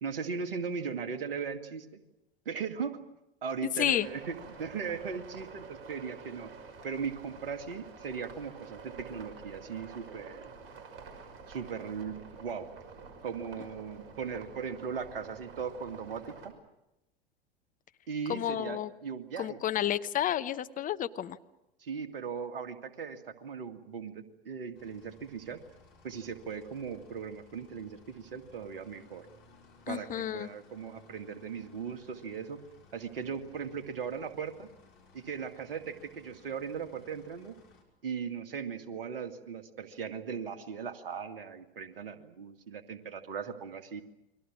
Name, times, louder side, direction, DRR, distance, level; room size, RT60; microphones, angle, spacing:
voice 1, 0.0-2.0 2.5-3.0 3.4-6.5 6.8-10.5 11.5-12.7 13.2-16.5 18.1-19.6 21.8-25.6 26.0-29.3 29.9-32.6 32.9-34.7 35.1-37.5 38.0-44.0, right 6 dB, 65° right, 8 dB, 2.3 m, -38 dB
voice 2, 3.8-4.1 18.3-18.9 19.4-21.4 29.9-30.5, left 11 dB, 25° left, 12 dB, 0.9 m, -31 dB
sound 1, 4.0-16.5, right 4 dB, 45° right, 5.7 m, -49 dB
sound 2, 24.7-37.8, left 4 dB, 60° left, 6.1 m, -60 dB
30.0 x 23.0 x 6.3 m, 0.90 s
figure-of-eight pair, 85°, 30 cm